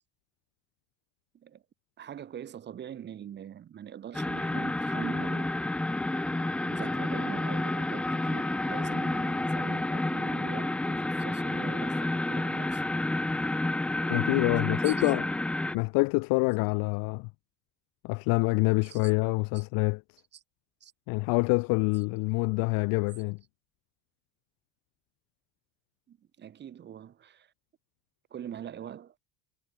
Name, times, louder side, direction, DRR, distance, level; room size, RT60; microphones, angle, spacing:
voice 1, 2.0-5.5 6.0-12.8 14.5-15.1 15.8-15.9 18.8-19.1 19.5-19.6 20.3-20.4 20.8-20.9 21.9-22.0 26.1-27.5 28.3-29.2, right 9 dB, 30° right, 2.3 m, -43 dB
sound 1, 4.1-15.8, left 2 dB, 5° left, 0.3 m, -30 dB
voice 2, 14.1-15.2 15.7-17.3 18.0-20.0 21.1-23.4, left 29 dB, 65° left, 0.8 m, -26 dB
cardioid pair, 170°, 38 cm